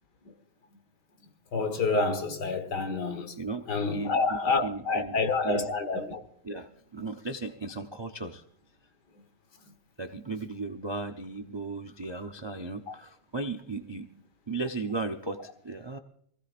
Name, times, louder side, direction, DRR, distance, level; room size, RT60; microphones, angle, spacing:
voice 1, 1.5-3.3 3.7-6.2, left 3 dB, 75° left, 2.0 m, -28 dB
voice 2, 3.4-5.7 6.4-8.4 10.0-14.1 14.5-16.0, right 3 dB, 45° right, 0.3 m, -36 dB
24.5 x 16.5 x 2.5 m
omnidirectional pair, 1.9 m